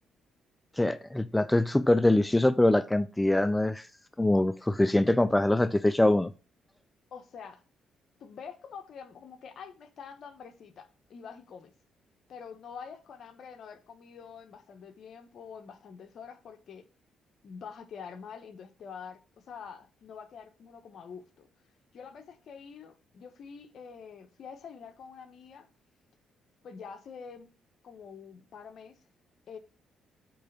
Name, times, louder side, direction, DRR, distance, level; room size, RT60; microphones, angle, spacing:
voice 1, 0.7-3.9 4.2-6.3, left 1 dB, 10° left, 0.4 m, -24 dB
voice 2, 7.1-7.6 8.2-11.7 12.3-16.9 17.4-21.5 21.9-25.7 26.6-27.5 27.8-29.0 29.5-29.6, left 6 dB, 60° left, 1.1 m, -46 dB
8.4 x 3.3 x 5.5 m
cardioid pair, 90°, 0 cm